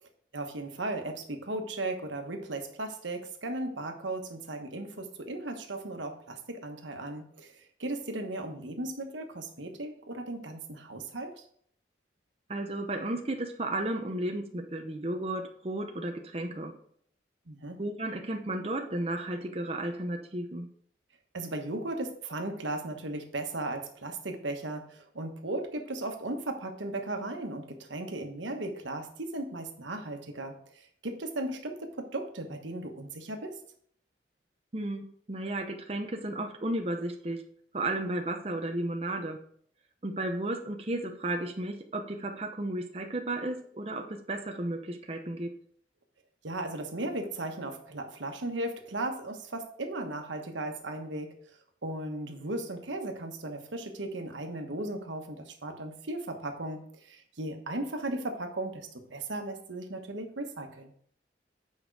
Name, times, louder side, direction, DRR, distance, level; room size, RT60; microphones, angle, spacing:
voice 1, 0.0-11.4 17.5-17.8 21.3-33.5 46.4-51.3 51.8-60.9, right 2 dB, 90° right, 4 dB, 1.3 m, -36 dB
voice 2, 12.5-16.7 17.8-20.7 34.7-37.4 37.7-39.4 40.0-45.5, right 1 dB, 30° right, 3 dB, 0.7 m, -33 dB
8.7 x 5.2 x 4.7 m, 0.62 s
head